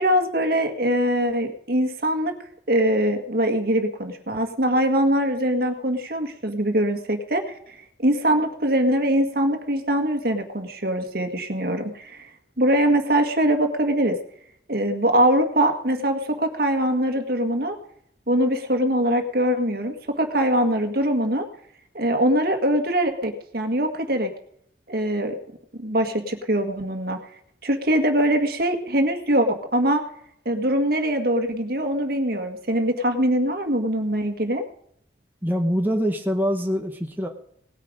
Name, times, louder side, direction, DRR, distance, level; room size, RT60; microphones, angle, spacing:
voice 1, 0.0-2.3 2.7-12.3 12.6-14.2 14.7-17.8 18.3-21.5 21.9-24.3 24.9-25.4 25.8-27.2 27.6-30.0 30.5-34.6, right 1 dB, 60° right, 6 dB, 1.8 m, -22 dB
voice 2, 35.4-37.3, equal, 10° right, 3 dB, 1.1 m, -24 dB
18.5 x 9.4 x 5.1 m, 0.66 s
head